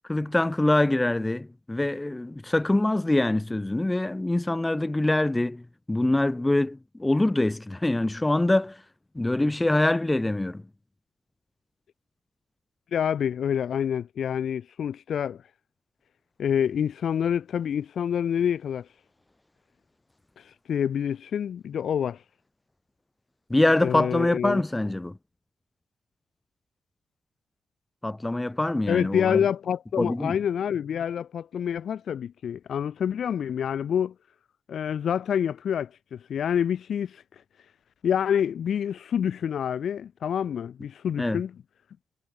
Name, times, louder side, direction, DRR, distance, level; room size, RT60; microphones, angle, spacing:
voice 1, 0.1-5.6 5.9-8.8 9.1-10.6 23.5-25.2 28.0-29.4 30.0-30.4 41.2-41.4, left 2 dB, 15° left, 6.8 m, -24 dB
voice 2, 12.9-15.4 16.4-18.9 20.4-22.2 23.8-24.6 28.9-34.1 34.7-37.2 38.0-41.5, left 8 dB, 65° left, 6.7 m, -27 dB
supercardioid pair, 65°, 0 cm